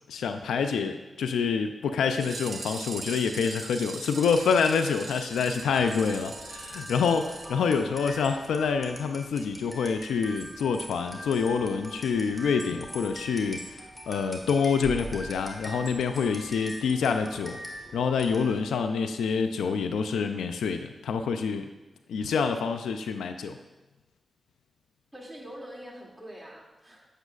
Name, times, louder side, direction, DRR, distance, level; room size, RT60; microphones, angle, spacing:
voice 1, 0.1-13.8 14.1-17.6 17.9-21.7 22.1-23.6, left 5 dB, 90° left, 8 dB, 0.4 m, -27 dB
sound 1, 2.1-8.2 8.5-8.6 8.9-9.0 9.4-9.5 9.8-9.9, right 4 dB, 60° right, 0.7 m, -42 dB
sound 2, 4.3-18.8, equal, 15° left, 1.8 m, -43 dB
voice 2, 7.5-8.2 25.1-27.1, right 1 dB, ahead, -4 dB, 2.4 m, -44 dB
8.7 x 8.3 x 2.4 m, 1.1 s
supercardioid pair, 45°, 0 cm